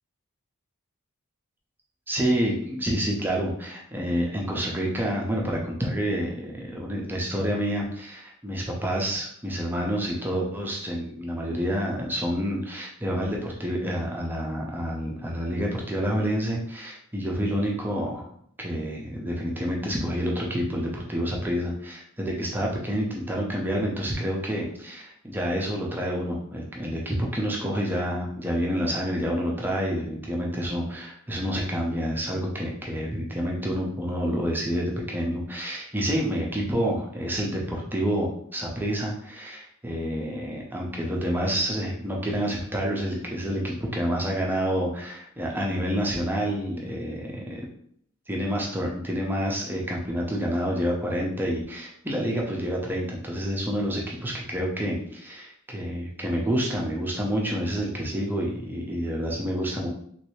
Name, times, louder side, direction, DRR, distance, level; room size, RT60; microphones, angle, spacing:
voice 1, 2.1-18.3 18.6-47.6 48.3-59.9, equal, 10° right, -2 dB, 0.5 m, -28 dB
3.1 x 2.6 x 3.0 m, 0.66 s
head